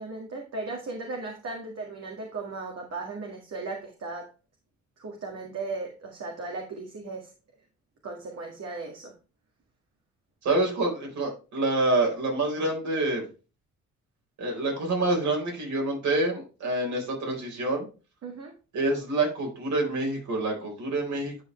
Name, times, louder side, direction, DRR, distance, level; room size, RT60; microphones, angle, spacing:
voice 1, 0.0-4.3 5.0-7.3 8.0-9.1 18.2-18.5, right 3 dB, 55° right, 0 dB, 1.9 m, -36 dB
voice 2, 10.4-13.3 14.4-17.9 18.7-21.4, right 2 dB, 70° right, 0 dB, 4.1 m, -27 dB
10.5 x 5.1 x 3.2 m, 0.33 s
cardioid pair, 90°, 30 cm